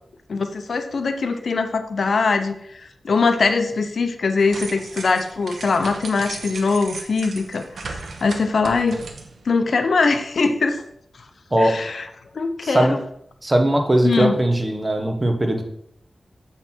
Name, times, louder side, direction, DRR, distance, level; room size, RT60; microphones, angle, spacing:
voice 1, 0.3-9.0 9.5-10.8 11.6-12.1 12.3-13.0 14.0-14.4, left 4 dB, 75° left, 8 dB, 0.7 m, -22 dB
sound 1, 4.4-9.5, right 3 dB, 85° right, 0.9 m, -36 dB
voice 2, 12.6-12.9 13.4-15.6, right 1 dB, 25° right, 4 dB, 1.3 m, -19 dB
7.8 x 5.7 x 4.5 m, 0.70 s
wide cardioid pair, 70°, 0 cm